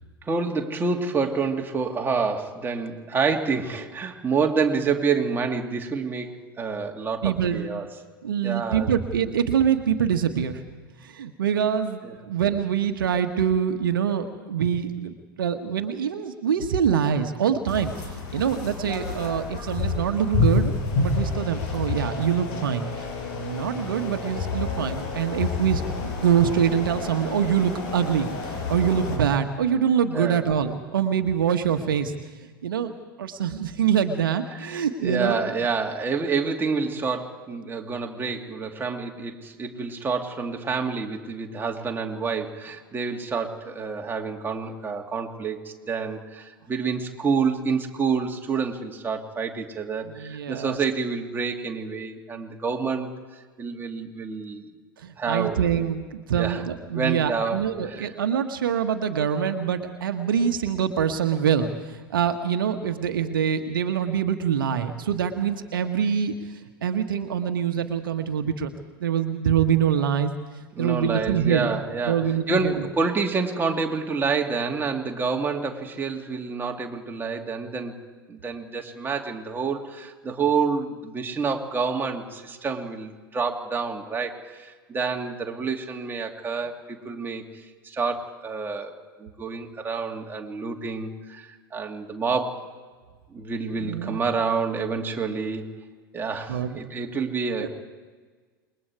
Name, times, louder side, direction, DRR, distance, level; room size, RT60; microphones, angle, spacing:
voice 1, 0.2-8.0 8.4-8.9 12.0-12.2 30.1-30.5 34.5-53.1 53.6-54.6 55.2-55.6 56.4-56.6 56.9-58.1 70.8-77.9 78.3-88.9 89.2-92.7 93.3-95.6 96.1-97.7, right 5 dB, 15° right, 2 dB, 2.6 m, -28 dB
voice 2, 7.2-7.7 8.2-10.6 11.0-20.7 21.0-23.0 23.3-32.1 32.6-35.4 50.0-50.8 55.0-68.7 69.0-70.3 70.8-71.7 72.1-72.8 93.8-94.2 96.5-96.8 97.6-97.7, right 8 dB, 70° right, 7 dB, 1.4 m, -25 dB
sound 1, 17.7-29.2, left 4 dB, 50° left, 6.2 m, -29 dB
28.0 x 21.5 x 4.8 m, 1.4 s
figure-of-eight pair, 90°, 12 cm